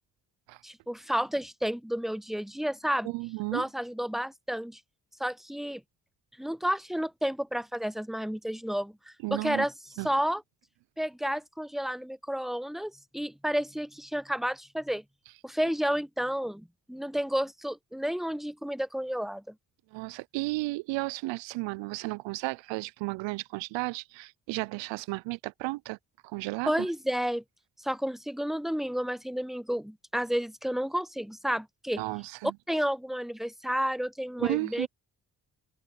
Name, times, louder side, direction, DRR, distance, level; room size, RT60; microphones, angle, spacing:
voice 1, 0.6-3.1 3.5-4.8 5.2-5.8 6.4-9.7 10.0-10.4 11.0-15.0 15.4-19.5 26.7-27.4 27.8-32.0 32.7-34.9, equal, ahead, 0.7 m, -31 dB
voice 2, 3.0-3.6 9.2-9.7 10.0-10.1 19.9-26.0 26.2-26.9 31.9-32.5 34.4-34.9, right 23 dB, 70° right, 0.9 m, -33 dB
hypercardioid pair, 40°, 46 cm